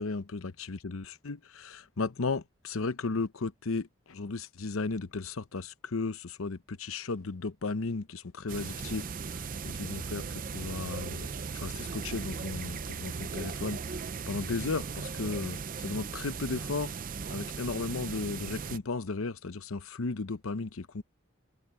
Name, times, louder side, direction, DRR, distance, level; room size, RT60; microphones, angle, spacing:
voice 1, 0.0-9.1 9.3-16.9 17.3-21.0, left 3 dB, 85° left, 0.8 m, -35 dB
sound 1, 8.5-18.8, right 5 dB, 40° right, 0.5 m, -38 dB
head